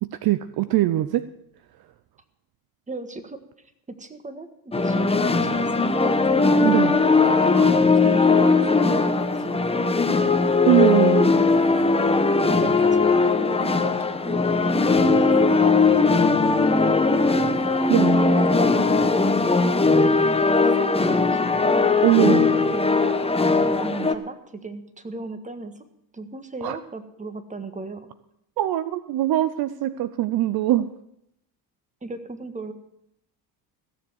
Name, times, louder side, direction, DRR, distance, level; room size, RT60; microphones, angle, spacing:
voice 1, 0.0-1.3 1.8-1.9 6.6-7.0 7.5-7.7 10.7-11.3 17.9-18.2 22.0-22.5 26.6-26.8 28.6-30.9, right 14 dB, 55° right, 14 dB, 0.7 m, -22 dB
voice 2, 2.9-3.4 4.0-6.9 7.5-7.7 8.0-10.3 12.4-13.9 14.2-15.6 16.4-17.2 17.7-19.1 19.7-22.1 22.7-23.1 23.6-25.7 26.1-28.1 32.0-32.7, right 3 dB, 15° right, 9 dB, 1.6 m, -37 dB
sound 1, 4.7-24.1, left 3 dB, 15° left, 1.0 m, -19 dB
16.0 x 7.2 x 7.9 m, 0.78 s
supercardioid pair, 85°, 44 cm